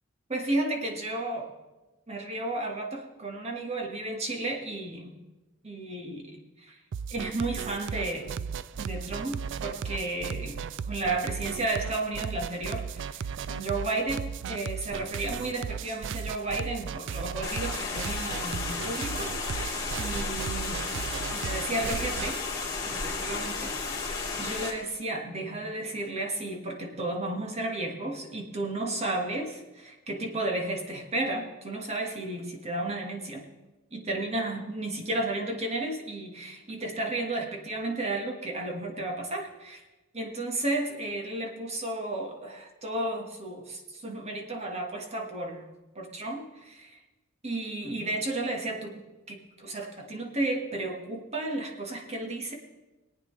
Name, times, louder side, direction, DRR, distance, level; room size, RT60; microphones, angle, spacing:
voice 1, 0.3-1.5 2.1-5.1 5.6-6.8 7.1-8.3 8.8-22.4 22.9-33.5 33.9-39.8 40.1-45.6 45.9-47.0 47.4-49.0 49.3-52.5, right 2 dB, 30° right, 1 dB, 1.6 m, -33 dB
sound 1, 6.9-22.4, right 7 dB, 60° right, 0.4 m, -36 dB
sound 2, 17.4-24.7, left 4 dB, 15° left, 2.9 m, -33 dB
22.0 x 8.9 x 3.3 m, 1.1 s
head